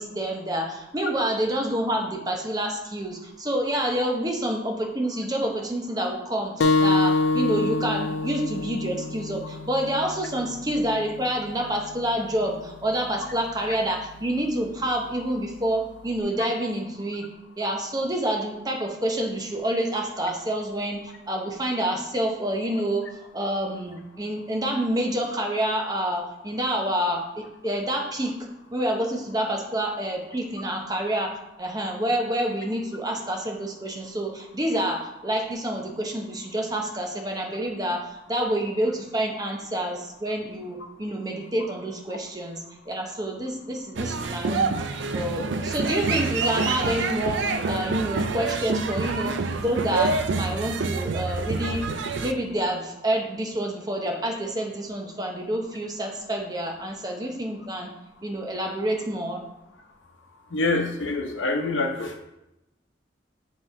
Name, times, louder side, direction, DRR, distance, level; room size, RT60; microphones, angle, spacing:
voice 1, 0.0-17.3 17.6-28.3 28.7-44.8 45.1-51.9 52.2-57.9 58.2-59.4, right 1 dB, 20° right, 1 dB, 0.8 m, -28 dB
sound 1, 6.6-11.7, left 3 dB, 70° left, 0.5 m, -26 dB
sound 2, 44.0-52.3, right 4 dB, 75° right, 0.4 m, -27 dB
voice 2, 60.5-62.2, left 2 dB, 85° left, 4 dB, 0.8 m, -26 dB
7.9 x 3.1 x 4.3 m, 0.89 s
head